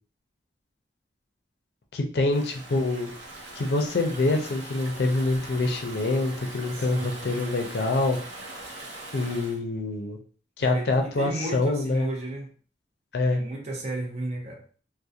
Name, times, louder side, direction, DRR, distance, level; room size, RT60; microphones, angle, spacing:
voice 1, 1.9-3.1 3.5-8.2 9.1-10.2 10.6-12.1 13.1-13.4, left 2 dB, 65° left, 3 dB, 0.4 m, -25 dB
Stream / Ocean, 2.3-9.6, right 2 dB, 85° right, 0.7 m, -41 dB
voice 2, 6.8-7.2 10.6-12.5 13.3-14.6, right 2 dB, 35° right, 1 dB, 0.5 m, -34 dB
2.3 x 2.1 x 2.7 m, 0.42 s
head